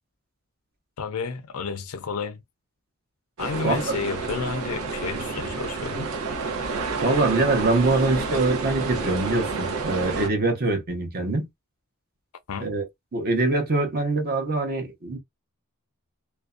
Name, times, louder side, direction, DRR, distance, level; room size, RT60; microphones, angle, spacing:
voice 1, 1.0-2.4 3.4-6.1 12.5-12.7, left 5 dB, 85° left, 0.5 m, -31 dB
sound 1, 3.4-10.3, right 4 dB, 85° right, 0.7 m, -29 dB
voice 2, 7.0-11.5 12.6-12.9 13.1-15.2, right 2 dB, 45° right, 0.8 m, -24 dB
2.6 x 2.1 x 2.3 m
head